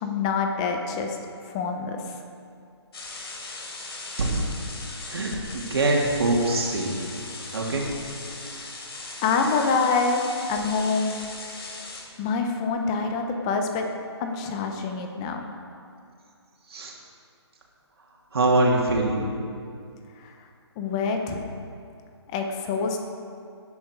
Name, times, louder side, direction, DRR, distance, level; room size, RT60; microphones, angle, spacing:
voice 1, 0.0-1.2 1.5-2.1 8.5-8.6 9.2-10.2 10.5-11.2 12.2-13.9 14.2-15.4 20.2-20.3 20.8-21.4 22.3-23.0, left 4 dB, 10° left, 4 dB, 0.7 m, -26 dB
sound 1, 2.9-12.0, left 3 dB, 60° left, 3.4 m, -38 dB
voice 2, 4.2-4.5 5.1-6.9 7.5-7.9 16.7-16.9 18.3-19.2, right 2 dB, 60° right, -2 dB, 3.1 m, -23 dB
18.0 x 10.5 x 4.8 m, 2.4 s
hypercardioid pair, 170°, 15 cm